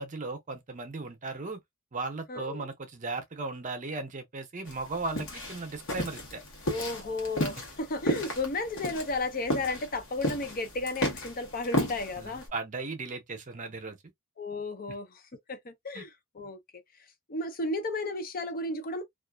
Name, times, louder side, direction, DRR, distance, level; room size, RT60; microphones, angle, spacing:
voice 1, 0.0-1.6 1.9-6.4 12.2-14.0 15.9-16.0, right 3 dB, 35° right, 0.7 m, -36 dB
voice 2, 2.3-2.7 6.6-12.5 14.4-15.2 15.5-16.8 17.3-19.0, left 2 dB, 45° left, 0.5 m, -34 dB
sound 1, 4.7-12.5, left 1 dB, 65° left, 1.0 m, -33 dB
2.4 x 2.3 x 2.2 m
head